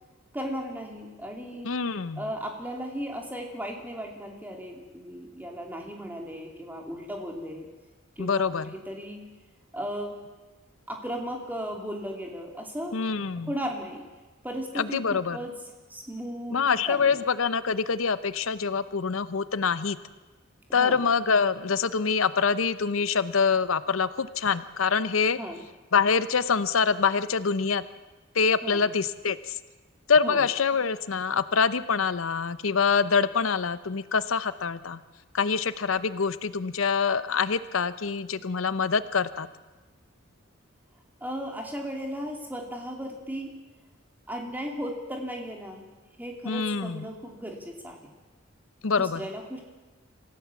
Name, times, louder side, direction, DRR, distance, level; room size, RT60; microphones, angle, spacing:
voice 1, 0.3-1.7 2.2-7.7 8.2-9.2 9.7-10.1 10.9-13.0 13.5-14.0 14.4-15.5 15.9-16.6 16.9-17.2 20.7-21.1 25.3-25.6 28.6-28.8 30.2-30.4 41.2-43.5 44.3-45.9 46.2-48.1 48.9-49.6, equal, 10° right, 1 dB, 2.9 m, -36 dB
voice 2, 1.6-2.2 8.2-8.7 12.9-13.5 14.8-15.4 16.5-20.0 20.7-25.4 25.9-27.8 28.3-29.6 30.1-35.0 35.3-39.5 46.5-47.0 48.8-49.2, left 5 dB, 80° left, 14 dB, 0.7 m, -25 dB
26.5 x 15.5 x 7.2 m, 1.2 s
head